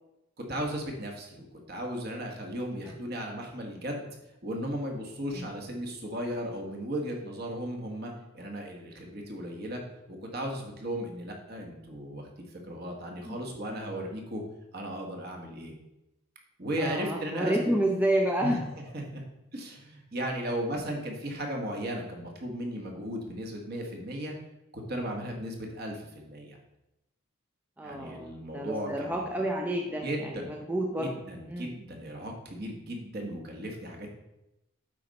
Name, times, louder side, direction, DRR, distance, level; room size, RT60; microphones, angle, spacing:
voice 1, 0.4-4.1 4.4-9.8 10.1-14.4 14.7-15.7 16.6-17.7 18.4-18.6 18.9-19.2 19.5-24.3 24.7-26.6 27.8-29.4 30.0-30.5 31.0-34.1, equal, 45° right, 1 dB, 1.4 m, -36 dB
voice 2, 16.8-18.6 27.8-31.1 31.5-31.7, right 1 dB, 10° right, 1 dB, 0.5 m, -29 dB
8.4 x 4.2 x 5.2 m, 0.91 s
head